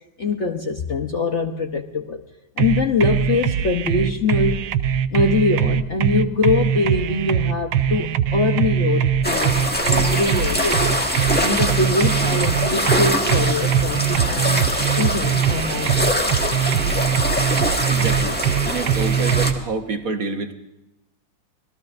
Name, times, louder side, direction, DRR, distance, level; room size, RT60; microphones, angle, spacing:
voice 1, 0.2-2.2 2.6-4.7 5.1-11.0 11.4-14.7 15.0-16.7, left 3 dB, 50° left, 4 dB, 1.0 m, -23 dB
sound 1, 2.6-19.5, right 9 dB, 65° right, 1.2 m, -21 dB
sound 2, 9.2-19.5, equal, 5° left, 1.5 m, -23 dB
voice 2, 17.9-18.4 18.6-20.5, right 4 dB, 50° right, 5 dB, 1.5 m, -27 dB
27.0 x 18.5 x 2.6 m, 0.90 s
omnidirectional pair, 2.0 m